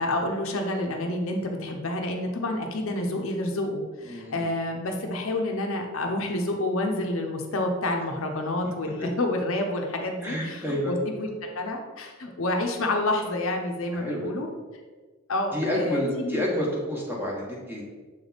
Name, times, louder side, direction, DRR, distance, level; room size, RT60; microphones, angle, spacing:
voice 1, 0.0-11.3 11.5-14.5 15.3-16.4, left 1 dB, 65° left, 3 dB, 0.7 m, -29 dB
voice 2, 4.0-4.4 9.0-9.1 10.2-11.0 13.9-14.3 15.5-17.8, equal, 10° right, -3 dB, 1.1 m, -29 dB
7.1 x 3.4 x 4.0 m, 1.4 s
head